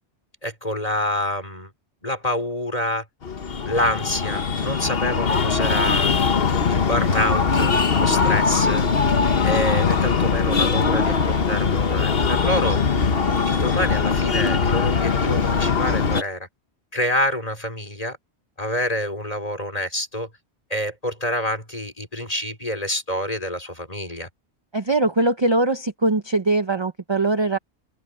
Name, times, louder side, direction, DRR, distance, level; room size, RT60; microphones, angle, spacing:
voice 1, 0.4-1.7 2.0-3.0 3.6-6.1 6.7-8.9 9.4-12.8 13.4-16.5 16.9-18.2 18.6-20.3 20.7-24.3, equal, 35° left, 5.1 m, -27 dB
Breathing, 3.2-16.2, left 5 dB, 55° left, 1.4 m, -21 dB
voice 2, 24.7-27.6, right 2 dB, 25° right, 0.8 m, -21 dB
open air
omnidirectional pair, 1.2 m